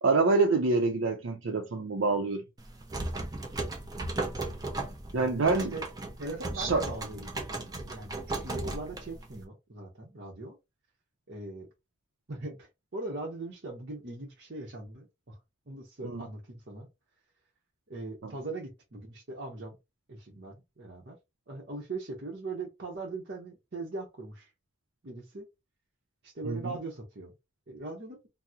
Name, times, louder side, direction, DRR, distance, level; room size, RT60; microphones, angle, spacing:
voice 1, 0.0-2.4 5.1-5.7 6.6-6.8 16.0-16.2 18.2-18.3 26.5-26.7, right 3 dB, 85° right, 0.5 m, -26 dB
sound 1, 2.6-9.4, right 2 dB, 20° right, 0.5 m, -36 dB
voice 2, 5.1-5.8 6.2-10.6 11.3-11.7 12.3-15.4 15.7-16.9 17.9-19.8 20.1-21.2 21.5-24.5 25.0-25.5 26.2-27.3 27.7-28.2, right 2 dB, 55° right, 0.8 m, -40 dB
2.9 x 2.0 x 3.5 m
head